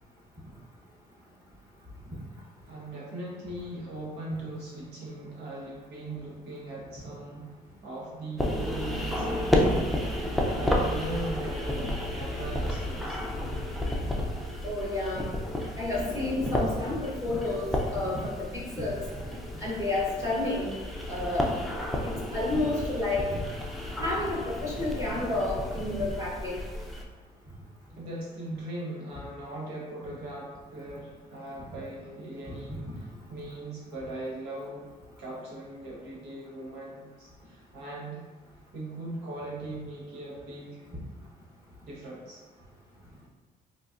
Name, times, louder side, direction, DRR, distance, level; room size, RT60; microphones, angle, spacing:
voice 1, 2.7-7.5 7.8-9.8 10.1-13.3 27.9-34.9 35.2-38.2 38.7-40.9 41.8-42.4, right 2 dB, 80° right, -5 dB, 1.1 m, -39 dB
sound 1, 8.4-27.0, left 1 dB, ahead, 0.4 m, -32 dB
voice 2, 14.6-15.3 15.8-19.0 19.6-20.7 21.1-21.5 22.3-23.4 24.0-26.6 32.7-32.8, left 2 dB, 15° right, -6 dB, 0.9 m, -30 dB
3.9 x 2.4 x 2.4 m, 1.3 s
cardioid pair, 110°, 17 cm